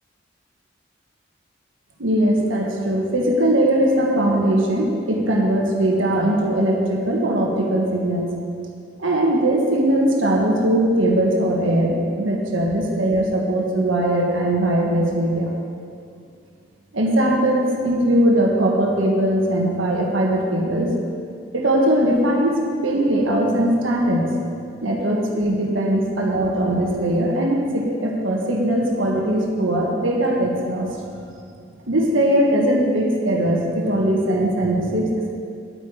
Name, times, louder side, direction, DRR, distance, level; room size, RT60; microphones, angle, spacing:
voice 1, 2.0-8.3 9.0-15.5 16.9-20.9 21.5-24.3 24.8-30.9 31.9-35.3, right 1 dB, 90° right, -1 dB, 1.5 m, -20 dB
11.0 x 8.8 x 5.0 m, 2.3 s
head